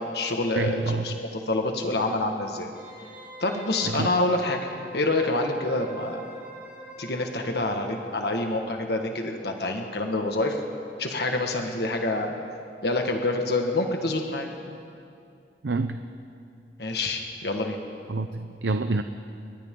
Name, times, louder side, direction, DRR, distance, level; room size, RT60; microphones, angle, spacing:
voice 1, 0.0-2.7 3.4-4.6 4.9-6.3 7.0-10.6 11.0-12.3 12.8-14.5 16.8-17.8, left 2 dB, 60° left, 3 dB, 1.7 m, -27 dB
voice 2, 0.6-1.2 3.8-4.1 15.6-16.0 18.1-19.0, right 3 dB, 85° right, 8 dB, 0.7 m, -27 dB
Wind instrument woodwind instrument, 2.7-8.3 8.6-8.7, right 1 dB, 10° right, 6.8 m, -45 dB
30.0 x 22.5 x 3.8 m, 2.5 s
head